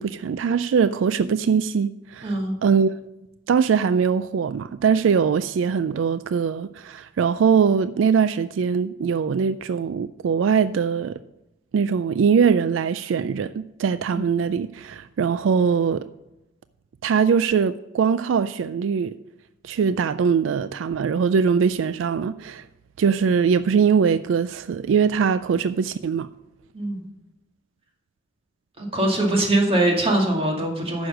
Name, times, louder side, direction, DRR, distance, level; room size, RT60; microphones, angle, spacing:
voice 1, 0.0-2.4 2.6-2.9 3.5-11.2 11.7-16.1 17.0-19.1 19.6-22.6 23.0-26.3, right 6 dB, 85° right, 0.3 m, -21 dB
voice 2, 2.2-2.5 14.1-14.2 26.7-27.1 28.8-31.1, right 1 dB, 30° right, 2.1 m, -22 dB
9.4 x 6.3 x 6.3 m
head